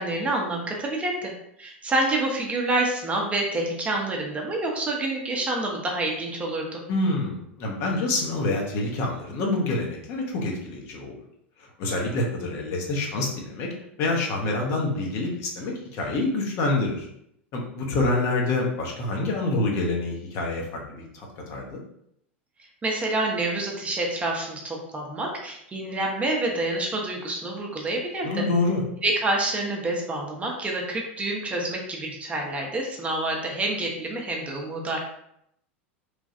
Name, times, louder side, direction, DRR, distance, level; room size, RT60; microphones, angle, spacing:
voice 1, 0.0-1.3 1.6-6.8 22.8-28.5 29.0-35.0, right 2 dB, 20° right, 0 dB, 0.6 m, -27 dB
voice 2, 6.9-11.1 11.8-13.7 14.0-17.1 17.5-21.8 28.2-28.8, left 2 dB, 45° left, 0 dB, 0.8 m, -27 dB
3.2 x 2.3 x 2.6 m, 0.74 s
figure-of-eight pair, 90°, 7 cm